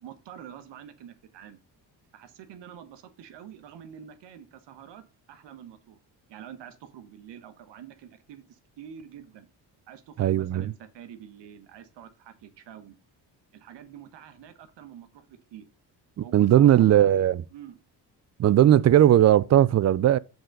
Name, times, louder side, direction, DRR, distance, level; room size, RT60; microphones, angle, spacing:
voice 1, 0.0-1.6 2.1-6.0 6.3-9.5 9.9-13.0 13.5-15.7 16.2-17.1 17.5-17.8 18.4-18.6, right 9 dB, 80° right, 1.2 m, -46 dB
voice 2, 10.2-10.7 16.2-17.4 18.4-20.2, right 11 dB, 40° right, 0.4 m, -18 dB
7.1 x 3.9 x 6.5 m
cardioid pair, 95°, 42 cm